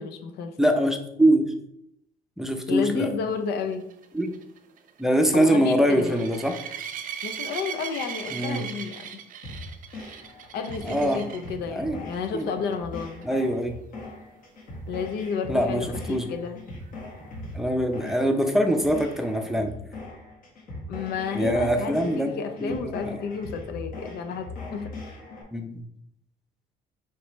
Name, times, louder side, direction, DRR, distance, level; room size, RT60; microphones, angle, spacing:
voice 1, 0.0-0.7 2.7-3.9 5.3-6.2 7.2-9.1 10.5-13.2 14.9-16.6 20.9-24.9, left 5 dB, 75° left, 8 dB, 0.6 m, -31 dB
voice 2, 0.6-1.5 2.4-3.1 4.1-4.3 5.0-6.5 8.3-8.6 10.8-11.2 11.7-12.0 12.3-12.5 13.2-13.8 15.5-16.3 17.5-19.7 21.3-22.3 22.6-23.2 25.5-25.8, right 1 dB, ahead, 4 dB, 0.5 m, -23 dB
sound 1, 3.6-11.5 12.1-12.4 12.7-12.8 13.2-13.3 16.9-17.0, right 8 dB, 55° right, 0.5 m, -38 dB
sound 2, 9.4-25.4, left 2 dB, 55° left, 1.3 m, -40 dB
4.6 x 3.2 x 3.0 m, 0.75 s
cardioid pair, 110°, 17 cm